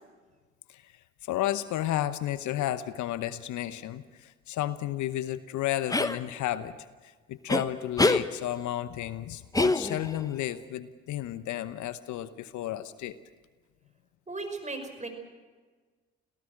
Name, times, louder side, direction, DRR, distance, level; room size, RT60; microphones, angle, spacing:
voice 1, 1.2-6.8 7.0-13.2, left 13 dB, 60° left, 14 dB, 0.9 m, -32 dB
sound 1, 5.9-6.2 7.5-7.6 8.0-8.2 9.5-10.2, left 2 dB, 10° left, 1.1 m, -24 dB
voice 2, 14.3-15.1, right 3 dB, 20° right, 6 dB, 5.5 m, -36 dB
27.0 x 17.0 x 6.6 m, 1.4 s
hypercardioid pair, 55°, 33 cm